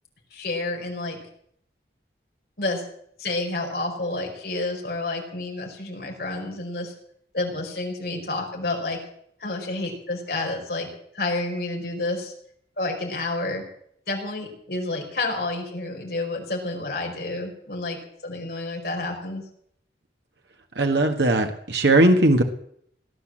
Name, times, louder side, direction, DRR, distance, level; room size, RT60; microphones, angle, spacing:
voice 1, 0.3-1.2 2.6-2.8 3.2-6.9 7.3-9.0 9.4-10.9 11.1-12.3 12.8-13.6 14.1-19.4, left 2 dB, 60° left, 1 dB, 4.9 m, -29 dB
voice 2, 20.8-22.4, right 2 dB, 75° right, 4 dB, 1.5 m, -18 dB
18.0 x 10.5 x 7.6 m, 0.67 s
head